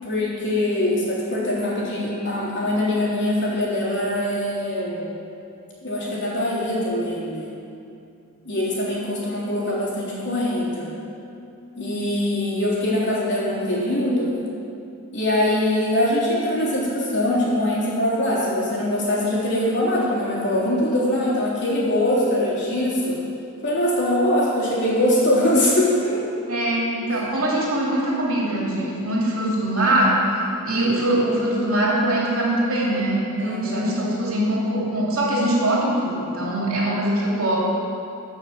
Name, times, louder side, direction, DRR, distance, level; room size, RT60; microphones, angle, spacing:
voice 1, 0.0-5.1 5.8-7.5 8.5-10.9 11.7-14.3 15.1-23.2 23.6-26.2 27.0-27.1 33.4-33.9, left 1 dB, 55° left, -7 dB, 3.6 m, -22 dB
voice 2, 26.4-30.2 30.6-37.6, right 1 dB, 65° right, -4 dB, 3.1 m, -22 dB
13.5 x 6.4 x 7.8 m, 2.6 s
head